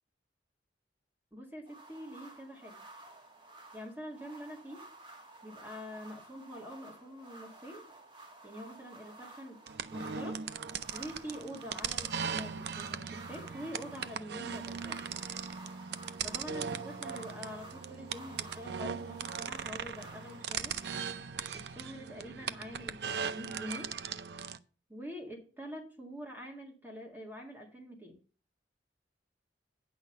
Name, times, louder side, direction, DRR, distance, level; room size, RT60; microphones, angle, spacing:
voice 1, 1.3-2.8 3.7-4.9 5.4-7.9 8.4-9.6 9.9-10.5 10.9-15.0 16.2-20.8 21.5-24.0 24.9-28.2, equal, 10° right, 0 dB, 1.7 m, -45 dB
sound 1, 1.7-21.0, right 2 dB, 30° right, 2.1 m, -53 dB
sound 2, 9.7-24.6, right 6 dB, 65° right, 0.5 m, -39 dB
9.4 x 6.2 x 5.4 m, 0.38 s
head